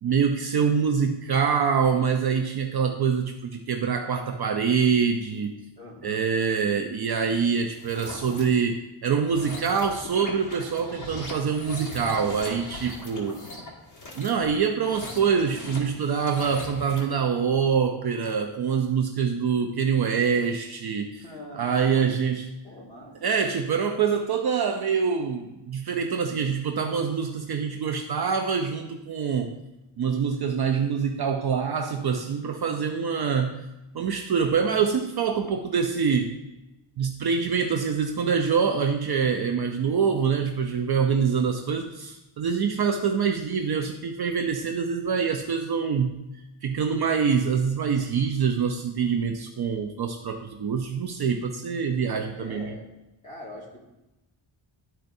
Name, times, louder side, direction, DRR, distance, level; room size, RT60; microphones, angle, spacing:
voice 1, 0.0-5.6 6.0-13.4 14.2-21.2 21.5-22.5 23.2-29.5 30.0-33.6 33.9-36.3 37.0-46.2 46.6-52.7, right 6 dB, 50° right, 4 dB, 0.5 m, -25 dB
voice 2, 5.8-6.3 13.1-13.5 21.2-22.2 22.6-23.4 26.2-26.5 40.1-40.4 52.0-53.0 53.2-53.8, left 1 dB, 15° left, -5 dB, 2.0 m, -44 dB
sound 1, 7.7-8.4 9.1-17.2, left 1 dB, 40° left, 1.6 m, -40 dB
12.0 x 4.4 x 2.6 m, 0.98 s
wide cardioid pair, 155°, 50 cm